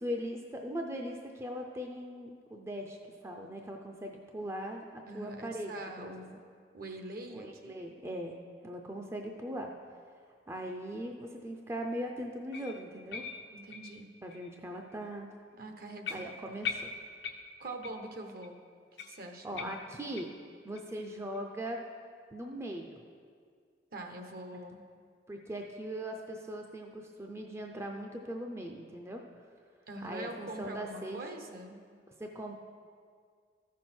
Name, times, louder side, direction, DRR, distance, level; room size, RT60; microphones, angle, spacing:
voice 1, 0.0-3.0 3.2-6.1 7.3-8.4 8.6-9.7 10.5-13.2 14.2-15.3 16.1-16.9 19.4-20.3 20.6-21.8 22.3-23.0 25.3-29.2 30.0-31.2 32.2-32.6, equal, 15° right, 2 dB, 0.5 m, -40 dB
voice 2, 5.1-6.4 6.7-7.7 13.5-14.1 15.5-16.2 17.6-18.5 19.1-19.7 23.9-24.8 29.9-31.8, right 2 dB, 55° right, 4 dB, 0.9 m, -43 dB
sound 1, 12.5-14.5 14.9-15.0 15.5-15.6 16.0-18.1 18.4-18.5 19.0-20.4 20.7-20.8 21.3-21.4 21.9-22.0, left 5 dB, 90° left, 0.9 m, -42 dB
13.5 x 6.3 x 4.3 m, 2.1 s
head